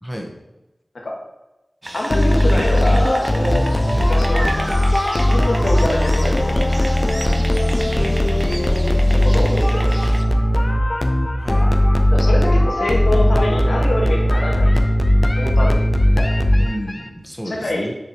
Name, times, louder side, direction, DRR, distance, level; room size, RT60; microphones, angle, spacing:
voice 1, 0.0-0.3 3.9-4.1 7.9-8.2 11.4-11.7 16.6-17.9, equal, 5° left, 2 dB, 1.2 m, -31 dB
sound 1, 1.8-10.2, right 1 dB, 30° right, 0.7 m, -32 dB
voice 2, 1.9-3.7 3.9-4.6 5.1-6.7 9.1-10.3 10.5-10.7 11.6-11.7 12.1-14.8 15.4-15.8 16.2-16.3 17.5-17.9, left 1 dB, 75° left, -1 dB, 1.7 m, -25 dB
sound 2, 2.1-17.0, left 1 dB, 35° left, 0.7 m, -17 dB
6.9 x 5.0 x 4.5 m, 1.0 s
wide cardioid pair, 70°, 0 cm